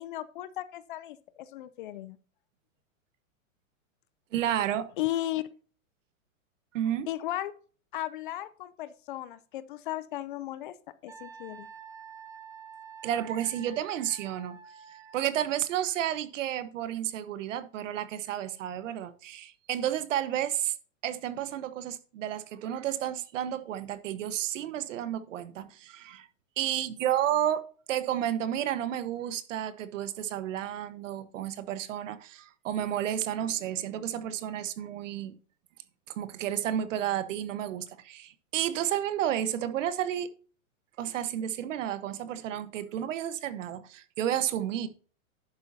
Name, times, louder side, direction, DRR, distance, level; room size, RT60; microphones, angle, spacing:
voice 1, 0.0-2.2 5.0-5.4 7.1-7.5 7.9-10.8 11.0-11.7, left 14 dB, 40° left, 0.5 m, -35 dB
voice 2, 4.3-4.9 6.7-7.1 13.0-14.6 15.1-20.7 21.0-26.3 26.6-27.6 27.9-35.4 36.2-40.3 41.0-44.9, right 11 dB, 60° right, 1.3 m, -31 dB
Wind instrument woodwind instrument, 11.1-15.3, right 7 dB, 10° right, 1.0 m, -48 dB
11.0 x 8.5 x 2.7 m
hypercardioid pair, 145°, 42 cm